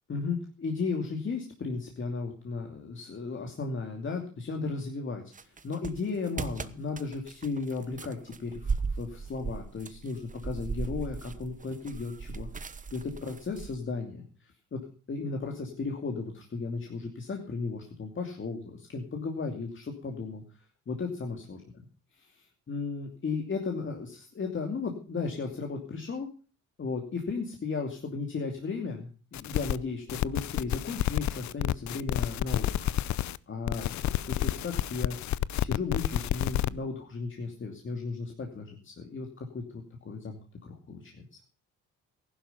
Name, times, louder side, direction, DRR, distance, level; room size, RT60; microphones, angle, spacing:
voice 1, 0.1-14.8 15.1-20.4 20.9-21.6 22.2-26.3 26.8-32.9 33.5-35.2 35.6-41.4, left 4 dB, 40° left, 3 dB, 2.7 m, -35 dB
sound 1, 5.3-13.8, right 5 dB, 25° right, 1.0 m, -37 dB
sound 2, 29.3-29.8 30.1-33.4 33.7-36.7, left 13 dB, 70° left, 0.6 m, -30 dB
15.0 x 11.5 x 5.5 m, 0.38 s
cardioid pair, 90°, 30 cm